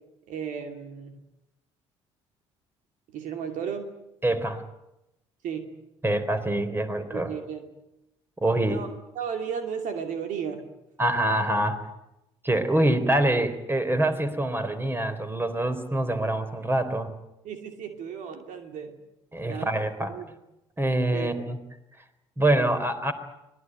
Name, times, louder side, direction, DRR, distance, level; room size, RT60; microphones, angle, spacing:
voice 1, 0.3-1.2 3.1-3.9 5.4-5.7 7.1-7.7 8.7-8.9 9.1-10.7 17.4-18.9 19.4-20.3 21.1-21.4, right 7 dB, 60° right, 6 dB, 2.7 m, -34 dB
voice 2, 4.2-4.6 6.0-7.3 8.4-8.8 11.0-11.8 12.4-17.1 19.3-20.1 20.8-21.6 22.4-23.1, right 1 dB, 15° right, 10 dB, 3.8 m, -25 dB
25.0 x 19.5 x 9.2 m, 0.89 s
hypercardioid pair, 55°, 15 cm